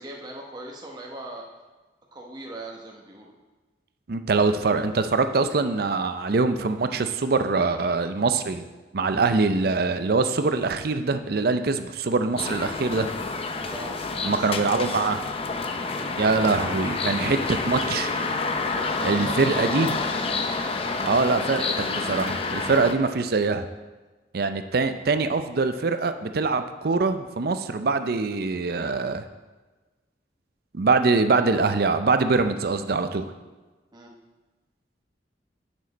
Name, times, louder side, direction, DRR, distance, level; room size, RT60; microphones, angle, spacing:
voice 1, 0.0-1.4 2.1-3.3 13.6-14.5 18.6-19.7 33.9-34.1, right 1 dB, 25° right, -1 dB, 1.0 m, -40 dB
voice 2, 4.1-8.6 8.9-13.1 14.2-15.3 16.2-18.1 19.0-20.0 21.0-23.7 24.3-29.2 30.7-33.2, right 4 dB, 60° right, 9 dB, 0.5 m, -23 dB
sound 1, 12.4-22.9, left 3 dB, 35° left, 0.6 m, -28 dB
9.1 x 6.3 x 4.1 m, 1.3 s
head